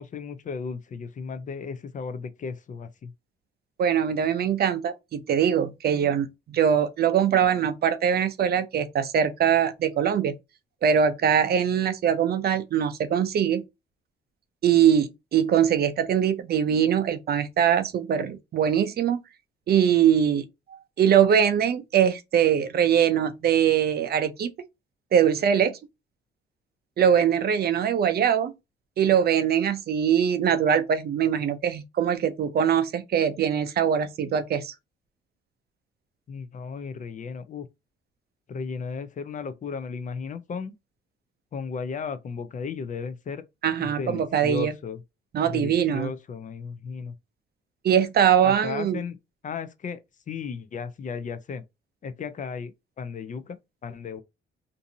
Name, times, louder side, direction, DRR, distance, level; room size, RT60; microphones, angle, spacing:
voice 1, 0.0-3.1 36.3-37.7 38.5-40.7 41.5-43.4 43.8-45.0 45.4-47.2 48.4-49.2 49.4-50.0 50.3-51.6 52.0-52.7 53.0-53.6 53.8-54.2, left 5 dB, 40° left, 0.4 m, -35 dB
voice 2, 3.8-10.3 10.8-13.6 14.6-19.2 19.7-20.4 21.0-24.5 25.1-25.7 27.0-28.5 29.0-34.7 43.6-44.7 45.3-46.1 47.8-49.0, right 8 dB, 50° right, 0.5 m, -22 dB
2.6 x 2.6 x 2.6 m
cardioid pair, 90°, 20 cm